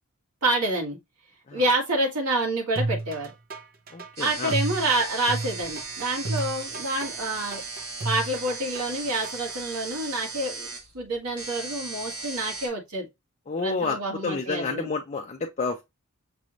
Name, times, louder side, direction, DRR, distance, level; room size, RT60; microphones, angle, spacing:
voice 1, 0.4-1.0 1.5-3.3 4.2-7.6 8.0-10.7 10.9-13.1 13.6-14.9, right 2 dB, 90° right, 1.9 m, -27 dB
sound 1, 2.8-9.6, right 2 dB, 40° right, 0.7 m, -33 dB
voice 2, 3.9-4.5 13.5-15.8, left 4 dB, 30° left, 0.4 m, -30 dB
sound 2, 4.2-12.7, right 4 dB, 70° right, 1.4 m, -37 dB
6.0 x 2.5 x 3.1 m
head